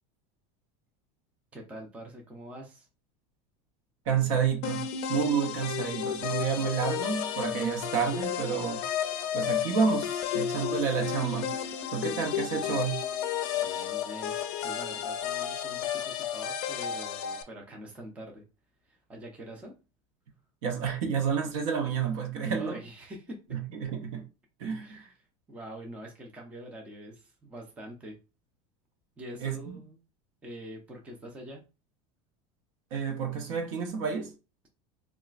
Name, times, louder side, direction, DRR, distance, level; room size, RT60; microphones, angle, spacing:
voice 1, 1.5-2.9 13.6-14.4 14.6-18.4 18.8-19.7 22.6-23.4 24.8-28.2 29.2-30.0 30.4-31.6, right 1 dB, 5° right, 0.4 m, -44 dB
voice 2, 4.1-8.8 9.3-11.5 11.9-13.0 20.6-22.8 23.5-24.3 24.6-25.1 29.4-29.8 32.9-34.3, right 6 dB, 60° right, 0.9 m, -30 dB
sound 1, 4.6-17.4, left 9 dB, 50° left, 0.5 m, -32 dB
4.1 x 2.3 x 2.4 m
supercardioid pair, 170°, 19 cm